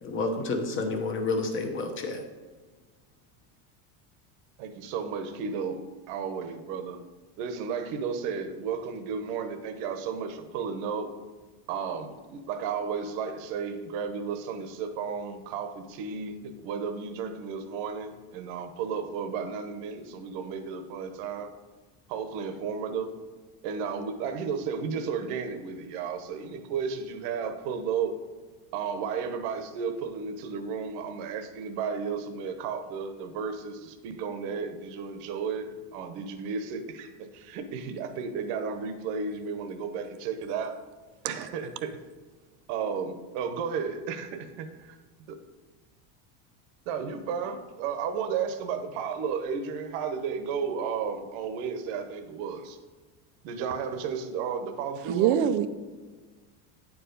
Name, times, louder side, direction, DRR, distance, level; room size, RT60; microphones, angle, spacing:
voice 1, 0.0-2.2, left 3 dB, 25° left, 1.0 m, -29 dB
voice 2, 4.6-5.8 6.1-7.0 7.4-11.1 11.7-21.5 22.1-23.1 23.6-28.2 28.7-40.8 41.2-42.0 42.7-45.0 45.3-45.4 46.9-52.8 53.4-55.5, right 6 dB, 60° right, 1.0 m, -33 dB
voice 3, 55.1-55.7, right 10 dB, 45° right, 0.5 m, -23 dB
9.7 x 4.8 x 5.2 m
cardioid pair, 160°, 44 cm